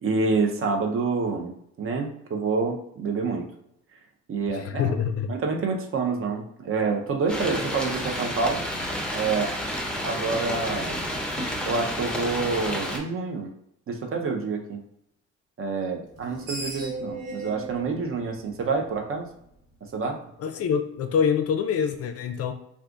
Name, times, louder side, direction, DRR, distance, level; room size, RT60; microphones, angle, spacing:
voice 1, 0.0-1.5 1.8-3.5 4.3-4.9 5.3-8.6 9.1-9.5 10.0-11.0 11.6-13.5 13.9-14.8 15.6-19.3 19.8-20.2, right 4 dB, 45° right, 2 dB, 0.7 m, -27 dB
voice 2, 4.5-5.3 20.4-22.5, left 7 dB, 50° left, 7 dB, 0.4 m, -25 dB
sound 1, 7.3-13.0, equal, 5° left, 0.6 m, -30 dB
Screech, 16.1-19.3, right 2 dB, 80° right, 1.3 m, -37 dB
2.4 x 2.4 x 3.7 m, 0.75 s
cardioid pair, 90°, 30 cm